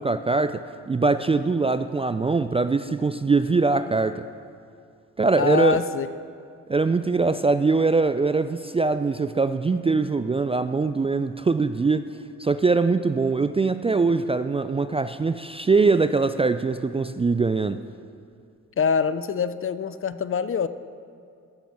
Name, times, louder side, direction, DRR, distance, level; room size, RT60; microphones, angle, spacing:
voice 1, 0.0-4.3 5.2-5.8 6.7-12.1 12.4-17.9, right 4 dB, 20° right, 11 dB, 0.3 m, -22 dB
voice 2, 5.4-6.1 18.8-20.7, left 6 dB, 40° left, 14 dB, 0.5 m, -24 dB
14.5 x 6.0 x 5.4 m, 2.3 s
supercardioid pair, 40°, 34 cm